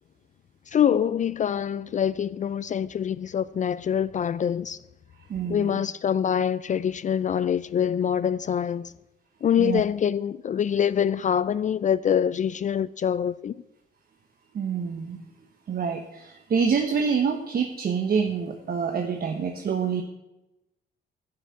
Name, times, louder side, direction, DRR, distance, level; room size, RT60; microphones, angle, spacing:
voice 1, 0.7-4.8 5.5-8.9 9.4-13.5, left 8 dB, 40° left, 0.4 m, -25 dB
voice 2, 5.3-5.8 9.6-9.8 14.5-15.2 15.7-20.0, right 6 dB, 50° right, 1.2 m, -26 dB
11.5 x 5.9 x 8.6 m
cardioid pair, 90°, 20 cm